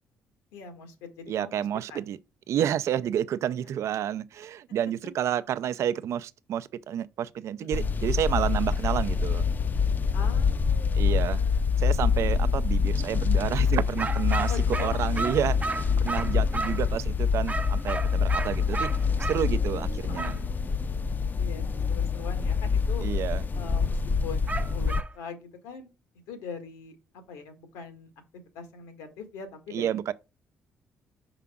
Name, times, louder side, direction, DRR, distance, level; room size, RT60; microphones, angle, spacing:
voice 1, 0.5-1.6 1.9-2.0 7.7-7.8 10.1-11.6 14.5-15.3 20.1-20.4 21.4-23.0 23.5-25.9 26.3-28.1 28.5-30.0, left 5 dB, 90° left, 1.6 m, -42 dB
voice 2, 1.3-2.2 2.5-9.5 10.9-11.4 11.8-15.6 16.0-20.4 23.0-23.4 29.7-30.1, right 10 dB, 65° right, 0.5 m, -30 dB
sound 1, 7.7-25.0, left 5 dB, 35° left, 0.5 m, -26 dB
sound 2, 14.0-16.9 17.5-19.4 20.1-20.4 24.5-25.1, right 3 dB, 30° right, 0.7 m, -33 dB
5.7 x 4.9 x 3.6 m
supercardioid pair, 60°, 5 cm